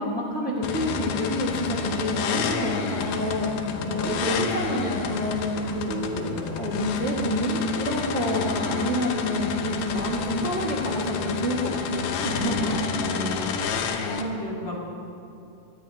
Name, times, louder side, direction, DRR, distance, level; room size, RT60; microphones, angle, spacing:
voice 1, 0.0-12.8, equal, 65° right, -5 dB, 0.6 m, -28 dB
sound 1, 0.6-14.2, left 6 dB, 70° left, 2.2 m, -30 dB
voice 2, 3.7-4.1 13.0-13.4 14.1-14.8, right 1 dB, 45° left, -4 dB, 3.6 m, -33 dB
23.5 x 18.0 x 2.8 m, 2.7 s
omnidirectional pair, 4.4 m